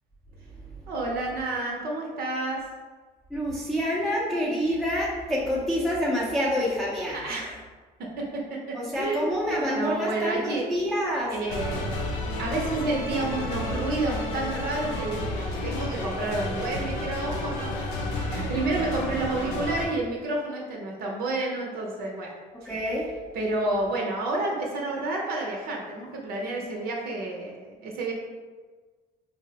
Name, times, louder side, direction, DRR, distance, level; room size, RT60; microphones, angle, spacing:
voice 1, 0.9-2.6 7.1-7.5 8.2-8.4 8.7-10.6 11.3-22.3 22.6-22.7 23.3-28.1, right 2 dB, 65° right, -2 dB, 0.6 m, -30 dB
voice 2, 3.3-7.2 8.7-11.3 22.6-23.1, equal, ahead, -6 dB, 0.5 m, -27 dB
sound 1, 11.5-19.9, left 2 dB, 90° left, 0.6 m, -31 dB
4.1 x 2.0 x 2.8 m, 1.4 s
cardioid pair, 110°, 17 cm